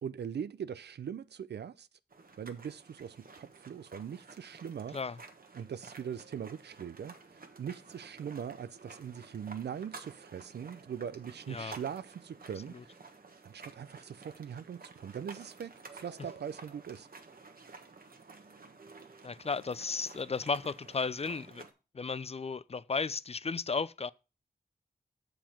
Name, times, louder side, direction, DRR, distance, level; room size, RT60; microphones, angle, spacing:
voice 1, 0.0-1.9 2.4-5.0 5.5-7.1 7.6-13.0 13.4-17.1, right 8 dB, 75° right, 0.5 m, -41 dB
sound 1, 2.1-21.7, right 4 dB, 55° right, 1.4 m, -52 dB
voice 2, 19.2-21.6 21.9-24.1, left 4 dB, 35° left, 0.5 m, -34 dB
7.1 x 5.0 x 5.8 m
cardioid pair, 45°, 17 cm